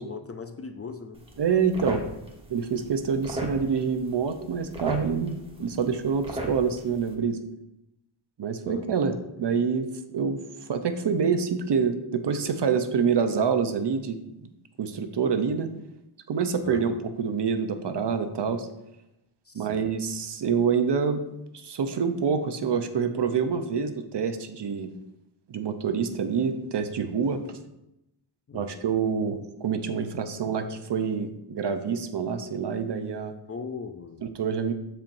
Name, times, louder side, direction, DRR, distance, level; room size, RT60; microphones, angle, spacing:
voice 1, 0.0-1.3 8.7-9.0 16.6-17.0 19.5-19.9 28.5-28.8 33.5-34.3, left 5 dB, 30° left, 6 dB, 0.5 m, -39 dB
sound 1, 1.1-7.1, right 1 dB, 10° right, 1.2 m, -38 dB
voice 2, 1.4-2.0 2.5-7.4 8.4-14.5 14.8-15.7 16.3-18.7 19.5-21.2 21.5-24.9 25.5-27.6 28.5-33.3 34.2-34.7, right 6 dB, 55° right, 8 dB, 0.8 m, -27 dB
12.5 x 4.5 x 2.6 m, 0.87 s
wide cardioid pair, 100°, 49 cm